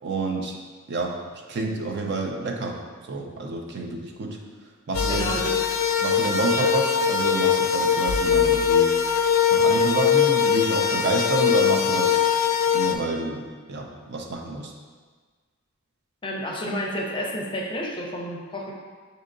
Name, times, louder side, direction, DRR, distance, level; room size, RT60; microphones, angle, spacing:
voice 1, 0.0-0.6 0.9-1.2 1.5-2.8 3.1-4.4 4.9-5.3 6.0-9.0 9.5-12.2 12.7-14.7, right 3 dB, 55° right, 2 dB, 0.5 m, -28 dB
sound 1, 4.9-13.0, left 7 dB, 75° left, 0.4 m, -21 dB
voice 2, 5.1-5.6 6.6-6.7 16.2-18.7, equal, 25° left, -1 dB, 0.5 m, -30 dB
6.3 x 2.8 x 2.5 m, 1.5 s
head